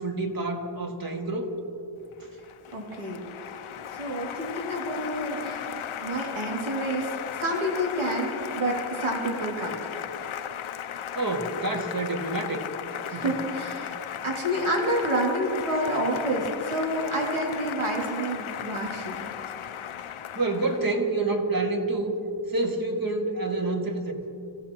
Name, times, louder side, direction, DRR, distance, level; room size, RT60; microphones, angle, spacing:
voice 1, 0.0-1.5 11.2-12.6 13.1-13.4 20.4-22.1 22.5-24.2, right 2 dB, 45° right, 2 dB, 2.0 m, -28 dB
Applause, 2.1-21.0, left 9 dB, 85° left, 0.7 m, -36 dB
voice 2, 2.7-3.6 3.9-5.7 6.0-7.1 7.4-9.8 13.1-14.0 14.2-19.3, right 1 dB, 85° right, -2 dB, 2.7 m, -29 dB
26.0 x 16.5 x 3.0 m, 2.8 s
wide cardioid pair, 70°, 48 cm